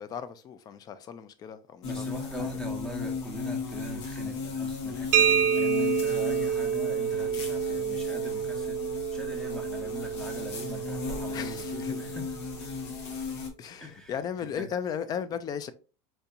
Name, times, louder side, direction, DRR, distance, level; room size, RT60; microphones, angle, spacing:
voice 1, 0.0-2.1 2.4-2.5 11.3-11.9 13.6-15.7, left 7 dB, 25° left, 0.4 m, -36 dB
sound 1, 1.8-13.5, left 5 dB, 75° left, 1.0 m, -35 dB
voice 2, 1.8-8.8 9.1-12.4 13.8-14.7, right 1 dB, 5° left, 0.8 m, -41 dB
sound 2, 5.1-12.7, right 8 dB, 55° right, 0.5 m, -29 dB
4.4 x 2.8 x 2.4 m
supercardioid pair, 145°, 15 cm